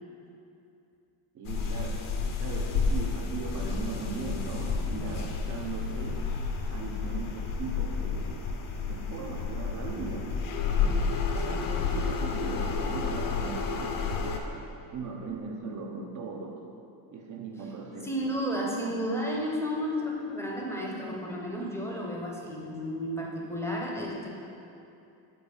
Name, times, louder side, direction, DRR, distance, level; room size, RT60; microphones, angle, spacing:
voice 1, 1.3-2.0 2.4-6.2 6.7-8.4 8.9-10.3 10.7-14.5 14.9-16.6 17.1-18.1, right 4 dB, 40° right, 2 dB, 0.8 m, -38 dB
sound 1, 1.4-14.4, left 5 dB, 45° left, 0.7 m, -31 dB
voice 2, 18.0-24.3, equal, 5° left, -2 dB, 0.8 m, -32 dB
6.9 x 4.4 x 5.3 m, 2.6 s
cardioid pair, 155°, 47 cm